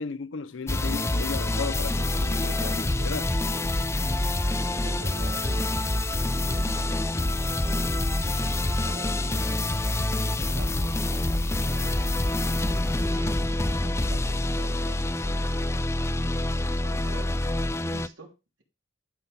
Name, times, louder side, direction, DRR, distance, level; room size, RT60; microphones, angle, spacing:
voice 1, 0.0-3.3, left 4 dB, 90° left, 0.6 m, -35 dB
sound 1, 0.7-18.1, left 1 dB, 15° left, 0.5 m, -26 dB
voice 2, 4.7-13.3 13.7-17.3 17.8-18.3, right 2 dB, 85° right, 3.2 m, -47 dB
12.5 x 5.7 x 5.3 m
head